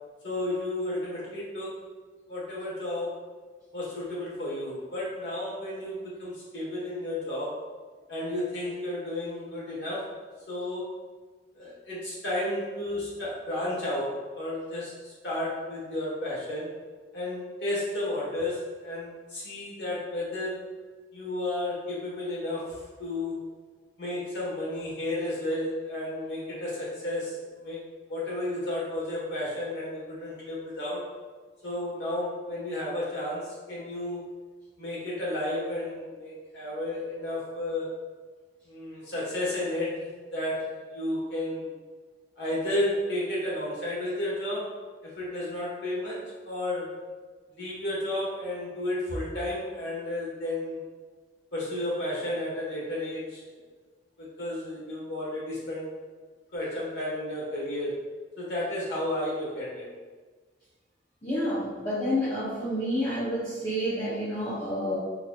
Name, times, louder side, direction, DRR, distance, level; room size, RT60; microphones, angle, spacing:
voice 1, 0.2-1.8 2.3-3.1 3.7-7.5 8.1-10.1 10.5-10.9 11.5-16.7 17.1-20.6 21.1-23.5 24.0-27.8 28.1-31.1 31.6-34.2 34.8-37.9 38.7-41.7 42.4-46.9 47.6-50.8 51.5-53.6 54.2-55.9 56.5-57.9 58.4-59.9, left 1 dB, 65° left, -6 dB, 1.3 m, -32 dB
voice 2, 61.2-65.0, equal, 20° left, -11 dB, 0.8 m, -29 dB
4.0 x 2.8 x 2.3 m, 1.4 s
head